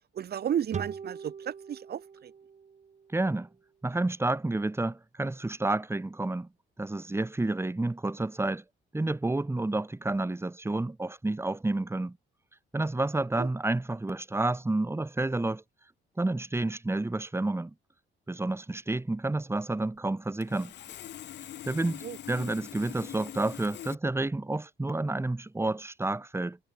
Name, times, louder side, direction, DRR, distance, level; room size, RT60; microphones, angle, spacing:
voice 1, 0.1-2.3 13.4-13.5 22.0-22.2, right 9 dB, 55° right, 1.0 m, -33 dB
sound 1, 0.7-4.1, right 6 dB, 35° right, 1.2 m, -42 dB
voice 2, 3.1-3.5 3.8-6.5 6.8-8.6 8.9-12.2 12.7-15.6 16.2-17.7 18.3-20.7 21.6-26.6, right 2 dB, 10° right, 1.6 m, -30 dB
Sawing, 20.4-23.9, left 11 dB, 60° left, 0.8 m, -43 dB
cardioid pair, 90°, 20 cm